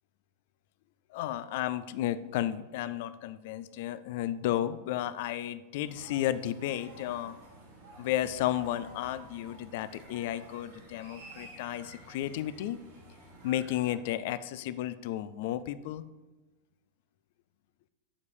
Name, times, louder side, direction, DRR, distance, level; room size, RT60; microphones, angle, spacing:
voice 1, 1.1-7.4 8.0-12.8 13.4-16.1, left 12 dB, 50° left, 14 dB, 0.4 m, -33 dB
sound 1, 5.8-13.9, right 2 dB, 55° right, 2.6 m, -52 dB
7.3 x 4.8 x 6.8 m, 1.2 s
figure-of-eight pair, 90°, 0 cm